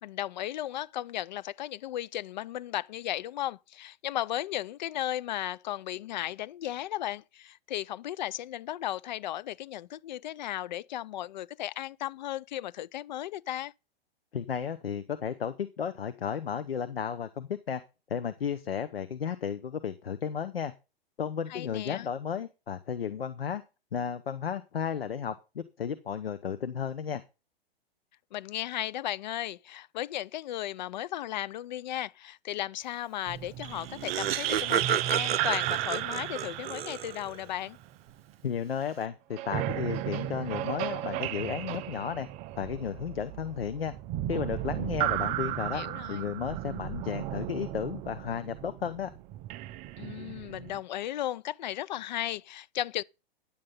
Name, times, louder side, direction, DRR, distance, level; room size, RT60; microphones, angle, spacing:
voice 1, 0.0-13.7 21.5-22.1 28.3-37.8 45.7-46.3 50.0-53.0, left 13 dB, 50° left, 0.5 m, -35 dB
voice 2, 14.3-17.8 18.1-20.7 21.2-23.6 23.9-27.2 38.4-42.3 42.5-43.9 44.3-45.8 46.1-49.1, left 7 dB, 70° left, 1.0 m, -33 dB
sound 1, 33.3-38.3 39.3-50.8, right 14 dB, 20° right, 0.5 m, -34 dB
Laughter, 33.5-33.6 33.7-37.4, right 9 dB, 75° right, 0.5 m, -32 dB
10.5 x 7.6 x 5.4 m
figure-of-eight pair, 110°, 30 cm